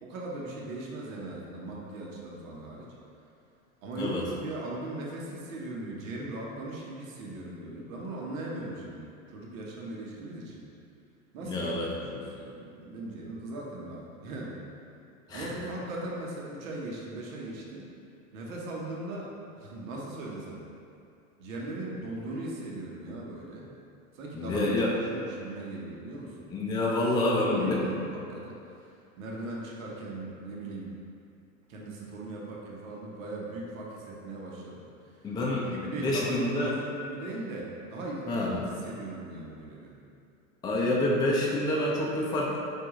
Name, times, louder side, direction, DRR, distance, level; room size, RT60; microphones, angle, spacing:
voice 1, 0.0-2.9 3.8-10.7 11.3-14.6 15.3-17.9 18.3-20.6 21.4-23.7 24.1-26.5 27.0-28.6 29.2-30.9 31.7-34.8 35.6-39.9, right 2 dB, 70° right, -3 dB, 1.0 m, -39 dB
voice 2, 11.4-11.9 15.3-15.5 24.3-24.9 26.5-27.8 35.2-36.7 38.3-38.5 40.6-42.6, left 1 dB, 10° left, -4 dB, 0.4 m, -27 dB
4.8 x 2.6 x 3.6 m, 2.5 s
hypercardioid pair, 100°, 41 cm